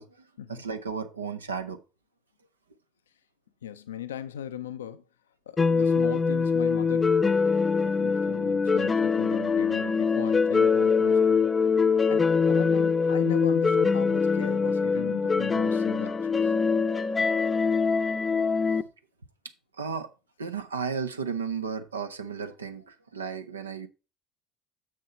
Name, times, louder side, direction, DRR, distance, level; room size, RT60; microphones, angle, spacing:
voice 1, 0.0-1.8 19.8-20.1 20.4-23.9, right 6 dB, 90° right, 0.6 m, -34 dB
voice 2, 3.6-5.0 5.5-11.5 12.1-16.5, left 10 dB, 85° left, 0.4 m, -38 dB
sound 1, 5.6-18.8, left 5 dB, 25° left, 0.6 m, -23 dB
6.7 x 6.4 x 4.3 m
hypercardioid pair, 60°, 0 cm